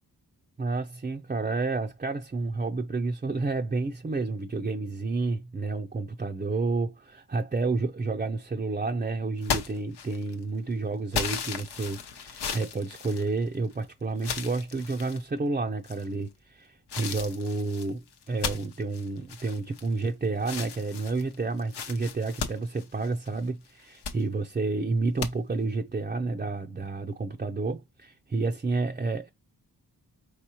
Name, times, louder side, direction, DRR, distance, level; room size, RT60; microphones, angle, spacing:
voice 1, 0.6-29.3, right 3 dB, 25° right, 0.5 m, -30 dB
sound 1, 9.4-10.4 11.1-13.7 14.2-15.2 15.8-16.3 16.9-20.1 20.4-23.4 23.8-24.2 25.2-25.3, left 6 dB, 85° left, 0.9 m, -35 dB
4.8 x 3.4 x 2.9 m
wide cardioid pair, 95°, 39 cm